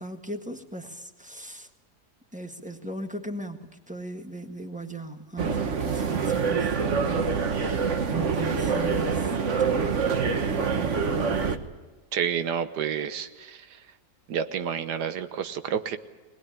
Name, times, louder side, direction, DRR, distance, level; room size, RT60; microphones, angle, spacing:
voice 1, 0.0-1.7 2.3-7.5 8.0-9.3 9.9-11.6, right 1 dB, 5° right, 5 dB, 1.5 m, -38 dB
sound 1, 5.4-11.6, right 5 dB, 50° right, 1.5 m, -25 dB
voice 2, 12.1-13.8 14.3-16.0, right 8 dB, 90° right, 10 dB, 1.6 m, -29 dB
21.5 x 19.5 x 9.8 m, 1.2 s
omnidirectional pair, 1.8 m